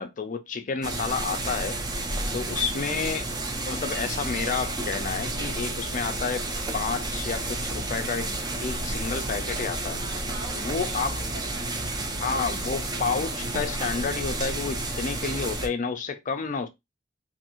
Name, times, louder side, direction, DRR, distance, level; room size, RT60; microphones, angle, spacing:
voice 1, 0.0-1.8 2.3-3.3 3.6-6.4 6.7-8.3 8.6-10.0 10.6-11.2 12.2-16.7, left 5 dB, 40° left, 0.4 m, -30 dB
sound 1, 0.8-15.7, right 2 dB, 20° right, 0.6 m, -31 dB
voice 2, 2.2-2.7 10.0-11.7, right 3 dB, 50° right, 1.5 m, -44 dB
2.6 x 2.5 x 2.9 m
head